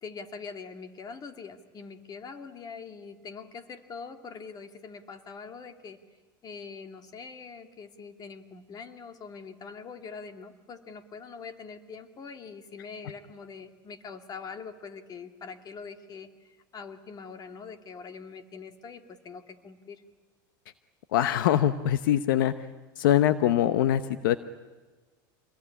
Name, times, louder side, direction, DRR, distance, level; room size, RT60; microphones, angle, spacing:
voice 1, 0.0-6.0 6.4-20.0, left 5 dB, 35° left, 7 dB, 2.4 m, -43 dB
voice 2, 21.1-22.7 23.0-24.4, left 11 dB, 80° left, 12 dB, 0.9 m, -23 dB
27.0 x 21.5 x 9.9 m, 1.3 s
hypercardioid pair, 95°, 11 cm